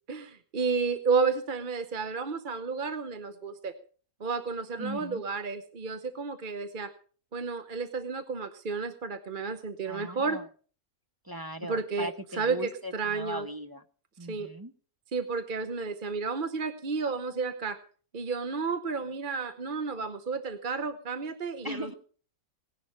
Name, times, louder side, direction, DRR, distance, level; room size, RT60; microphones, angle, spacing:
voice 1, 0.1-3.7 4.2-6.9 7.3-10.4 11.7-13.5 14.3-14.5 15.1-17.8 18.1-21.9, right 4 dB, 40° right, 10 dB, 0.9 m, -32 dB
voice 2, 4.8-5.2 9.8-10.5 11.2-13.8 14.2-14.7 21.6-21.9, right 1 dB, 20° right, 7 dB, 0.7 m, -39 dB
18.0 x 11.0 x 5.7 m, 0.43 s
omnidirectional pair, 1.5 m